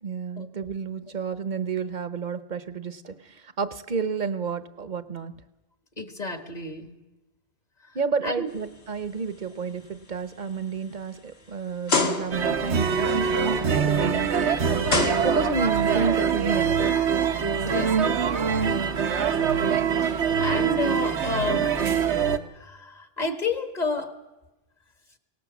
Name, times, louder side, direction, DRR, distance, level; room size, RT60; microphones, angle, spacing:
voice 1, 0.0-5.3 7.9-14.4 15.2-16.9, right 5 dB, 45° right, 13 dB, 1.0 m, -30 dB
voice 2, 6.0-6.9 8.2-8.5 17.6-18.1 20.0-21.7 22.6-24.1, left 3 dB, 40° left, 8 dB, 1.8 m, -30 dB
sound 1, 8.7-9.0 9.5-9.7 10.4-10.5 11.9-12.6 14.1-14.2 14.9-15.8, left 3 dB, 70° left, 1.9 m, -26 dB
sound 2, 12.3-22.4, right 6 dB, 85° right, 1.4 m, -24 dB
23.5 x 18.5 x 7.3 m, 1.1 s
omnidirectional pair, 1.1 m